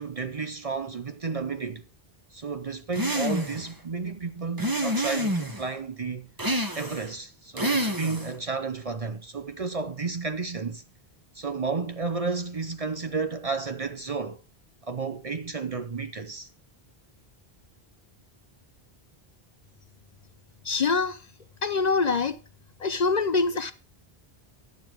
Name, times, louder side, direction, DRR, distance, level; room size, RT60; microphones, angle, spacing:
voice 1, 0.0-1.9 2.3-6.3 6.8-10.8 11.3-14.4 14.8-16.5, right 4 dB, 40° right, 0.7 m, -32 dB
sound 1, 2.9-3.7 4.6-5.6 6.4-7.1 7.6-8.4, equal, 20° right, 1.3 m, -28 dB
voice 2, 20.6-21.2 21.6-22.4 22.8-23.7, left 4 dB, 50° left, 0.7 m, -24 dB
11.5 x 7.0 x 4.6 m
omnidirectional pair, 1.0 m